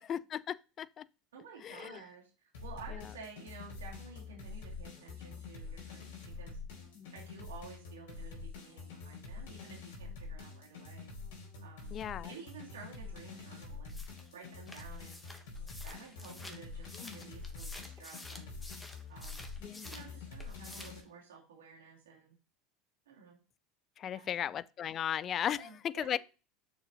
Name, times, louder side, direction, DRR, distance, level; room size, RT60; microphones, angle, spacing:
voice 1, 0.1-1.1 1.6-2.0 2.9-3.0 7.0-7.1 11.9-12.3 17.0-17.3 19.6-19.9 24.0-26.2, left 9 dB, 40° left, 0.4 m, -36 dB
voice 2, 1.3-6.6 7.1-11.1 11.6-14.0 14.3-15.2 15.8-18.5 19.1-19.5 19.8-22.3 23.1-23.4 24.1-24.5 25.4-26.2, right 5 dB, 90° right, 2.6 m, -52 dB
sound 1, 2.5-21.0, left 4 dB, 75° left, 2.7 m, -46 dB
sound 2, 13.9-20.1 20.4-21.0, left 1 dB, 10° left, 1.4 m, -50 dB
6.6 x 4.6 x 4.0 m
hypercardioid pair, 90°, 0 cm